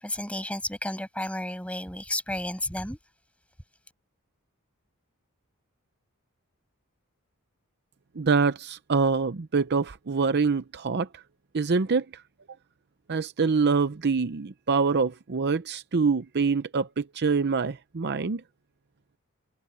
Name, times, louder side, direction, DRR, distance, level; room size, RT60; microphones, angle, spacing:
voice 1, 0.0-3.0, left 1 dB, 5° left, 7.5 m, -32 dB
voice 2, 8.2-11.2 11.5-12.2 13.1-18.4, right 4 dB, 50° right, 0.6 m, -25 dB
head